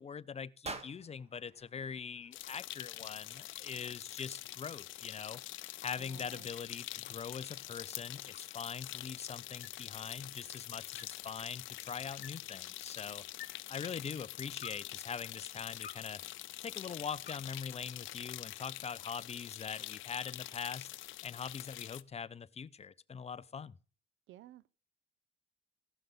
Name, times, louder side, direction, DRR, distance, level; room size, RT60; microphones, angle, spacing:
voice 1, 0.0-5.4 5.8-13.2 13.7-16.2 16.6-20.9 21.2-23.7, left 6 dB, 30° left, 0.6 m, -43 dB
sound 1, 0.6-2.8, right 3 dB, 30° right, 1.6 m, -48 dB
sound 2, 0.8-18.6, left 7 dB, 55° left, 1.5 m, -59 dB
sound 3, 2.3-22.0, left 15 dB, 80° left, 0.5 m, -45 dB
voice 2, 6.0-6.5 24.3-24.7, right 13 dB, 80° right, 0.5 m, -54 dB
16.0 x 5.8 x 5.4 m
cardioid pair, 90°, 20 cm